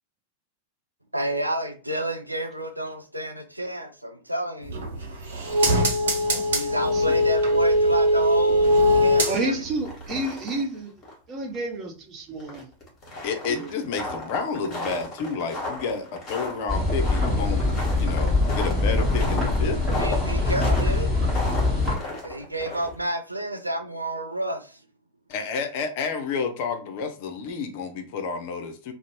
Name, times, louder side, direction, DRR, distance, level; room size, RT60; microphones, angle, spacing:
voice 1, 1.1-4.8 6.5-9.5 20.0-21.1 22.2-24.8, right 1 dB, 85° right, 0.4 m, -30 dB
sound 1, 4.6-9.8 10.1-10.2, equal, 65° right, 0.7 m, -21 dB
voice 2, 9.3-10.9 11.3-12.7 13.4-14.0, right 2 dB, 30° right, 0.7 m, -30 dB
sound 2, 9.7-10.8 11.0-11.1 11.5-11.6 12.4-23.1, left 2 dB, 30° left, 1.1 m, -34 dB
voice 3, 13.2-19.8 25.3-28.9, left 5 dB, 50° left, 0.5 m, -30 dB
sound 3, 16.7-22.0, left 2 dB, 5° right, 1.1 m, -23 dB
2.5 x 2.0 x 2.9 m
figure-of-eight pair, 90°, 0 cm